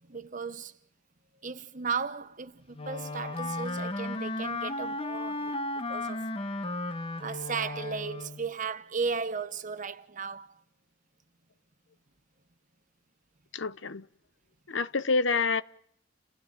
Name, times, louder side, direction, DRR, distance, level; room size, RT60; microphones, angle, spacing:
voice 1, 0.1-0.7 1.4-5.5 5.9-6.3 7.2-10.6, right 5 dB, 40° right, 1.1 m, -35 dB
Wind instrument woodwind instrument, 2.7-8.5, left 2 dB, 30° left, 1.4 m, -34 dB
voice 2, 13.5-14.0 14.7-15.6, left 4 dB, 75° left, 1.0 m, -27 dB
30.0 x 16.0 x 8.9 m
head